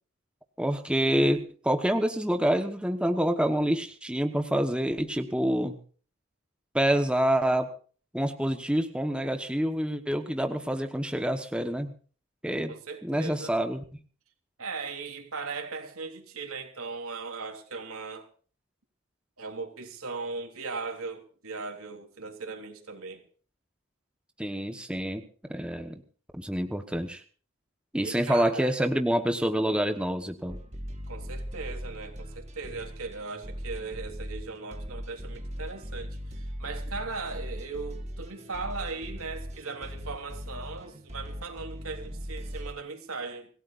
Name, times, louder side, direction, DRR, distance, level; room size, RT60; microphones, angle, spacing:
voice 1, 0.6-5.8 6.7-7.7 8.1-11.9 12.4-12.7 13.0-13.8 24.4-25.2 25.5-26.0 26.3-27.2 27.9-30.6, equal, 5° right, 1.1 m, -27 dB
voice 2, 12.7-13.5 14.6-18.3 19.4-23.2 28.0-28.7 31.1-43.5, right 4 dB, 85° right, 3.2 m, -38 dB
sound 1, 30.5-42.7, equal, 30° right, 2.4 m, -39 dB
26.5 x 17.0 x 2.5 m
head